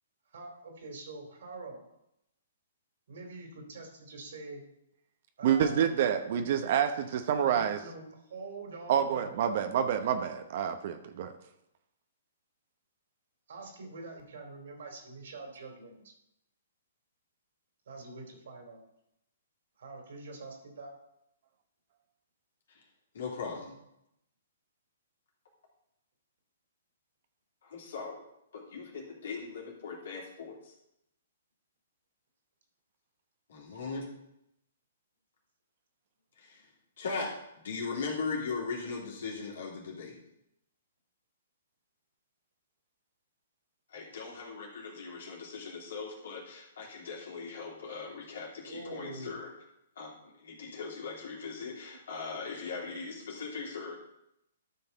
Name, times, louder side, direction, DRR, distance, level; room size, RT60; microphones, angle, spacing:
voice 1, 0.3-1.8 3.1-4.6 5.4-5.9 6.3-6.4 7.5-9.4 13.5-16.1 17.9-18.8 19.8-20.9 48.6-49.4, right 3 dB, 65° right, 3 dB, 2.9 m, -45 dB
voice 2, 5.4-7.8 8.9-11.3, right 8 dB, 50° right, 8 dB, 0.8 m, -28 dB
voice 3, 23.1-23.7 27.6-28.2 28.5-30.7 33.5-34.1 36.4-36.7 37.0-37.4 37.6-40.2 43.9-49.5 50.0-50.1 50.4-54.0, left 4 dB, 65° left, -2 dB, 3.0 m, -39 dB
12.5 x 5.8 x 4.0 m, 0.82 s
hypercardioid pair, 125°, 0 cm